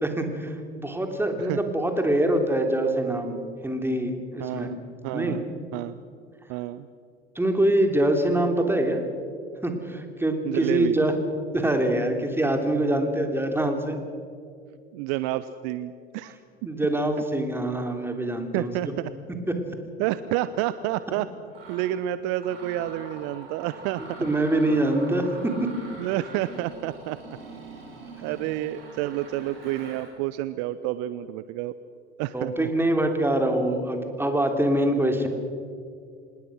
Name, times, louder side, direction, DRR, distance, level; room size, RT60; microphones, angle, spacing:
voice 1, 0.0-4.7 5.1-5.4 7.4-9.0 9.6-11.1 11.5-14.0 16.7-18.7 24.2-25.5 28.3-28.4 32.3-35.3, right 1 dB, 10° right, 5 dB, 3.3 m, -24 dB
voice 2, 4.4-4.8 5.0-5.5 5.7-6.0 6.5-6.9 10.4-11.0 14.9-16.4 18.5-19.1 20.0-21.3 21.7-24.2 26.0-27.2 28.2-31.7 32.2-32.7, right 14 dB, 55° right, 15 dB, 0.8 m, -29 dB
Mechanisms, 20.9-21.0 21.5-21.9 22.3-30.1, right 3 dB, 75° right, 7.7 m, -44 dB
26.5 x 19.5 x 6.4 m, 2.3 s
figure-of-eight pair, 65°, 29 cm